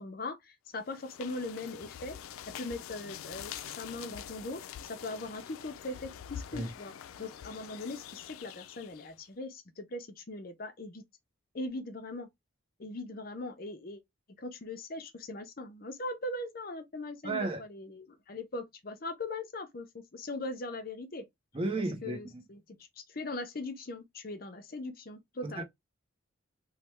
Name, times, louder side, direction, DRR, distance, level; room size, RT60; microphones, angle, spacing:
voice 1, 0.0-2.2 2.5-4.6 4.9-6.9 7.2-11.0 11.5-12.3 12.8-14.0 14.4-21.3 22.0-25.6, left 2 dB, 45° left, 0.6 m, -40 dB
sound 1, 0.8-9.2, left 9 dB, 85° left, 0.3 m, -45 dB
voice 2, 17.2-17.6 21.5-22.4 25.4-25.6, right 2 dB, 25° right, 0.6 m, -33 dB
3.2 x 2.1 x 3.0 m
head